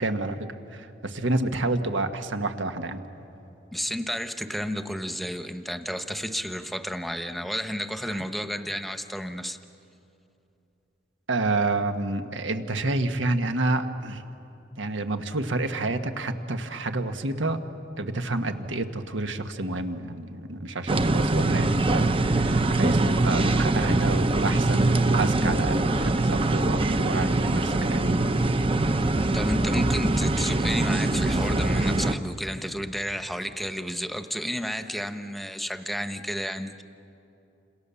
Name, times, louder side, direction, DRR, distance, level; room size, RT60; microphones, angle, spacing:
voice 1, 0.0-3.0 8.1-8.2 11.3-14.2 14.8-17.6 18.0-28.3, right 2 dB, 80° right, 7 dB, 1.5 m, -29 dB
voice 2, 3.7-9.6 29.3-36.8, equal, ahead, 8 dB, 1.0 m, -31 dB
sound 1, 20.9-32.1, right 2 dB, 30° right, 0.8 m, -23 dB
30.0 x 27.0 x 7.1 m, 2.8 s
head